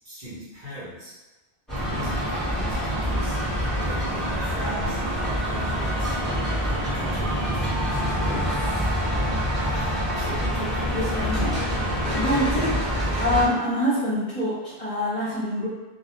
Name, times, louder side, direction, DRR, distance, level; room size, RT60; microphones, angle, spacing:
voice 1, 0.0-1.1 1.9-3.6 3.8-6.2 6.6-8.8 9.1-9.4 9.8-11.4 12.3-12.7, equal, 55° right, -9 dB, 0.9 m, -39 dB
sound 1, 1.7-13.4, equal, ahead, 1.0 m, -26 dB
voice 2, 8.0-8.6 10.9-11.6 12.1-12.7 13.2-15.7, equal, 35° left, -10 dB, 0.8 m, -26 dB
2.2 x 2.1 x 2.8 m, 1.1 s
omnidirectional pair, 1.1 m